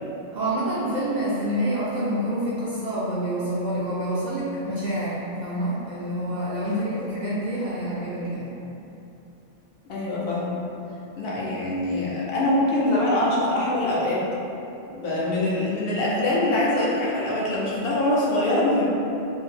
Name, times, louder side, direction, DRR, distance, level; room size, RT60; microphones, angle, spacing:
voice 1, 0.3-8.5 15.2-15.4 15.9-16.0, right 1 dB, 55° right, -9 dB, 0.5 m, -27 dB
voice 2, 9.9-10.5 11.2-14.2 14.9-18.9, left 1 dB, 70° left, -6 dB, 0.8 m, -24 dB
2.6 x 2.1 x 3.2 m, 2.9 s
omnidirectional pair, 1.1 m